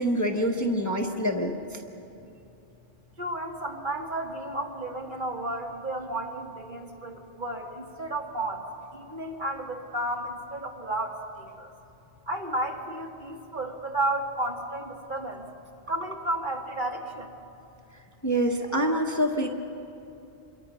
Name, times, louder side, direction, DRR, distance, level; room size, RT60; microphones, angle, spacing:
voice 1, 0.0-1.5 18.2-19.5, equal, 15° left, 2 dB, 1.2 m, -25 dB
voice 2, 3.2-8.6 8.9-11.7 12.3-15.4 15.9-17.3, right 1 dB, 45° right, 1 dB, 2.0 m, -32 dB
27.0 x 23.0 x 5.6 m, 2.8 s
omnidirectional pair, 1.1 m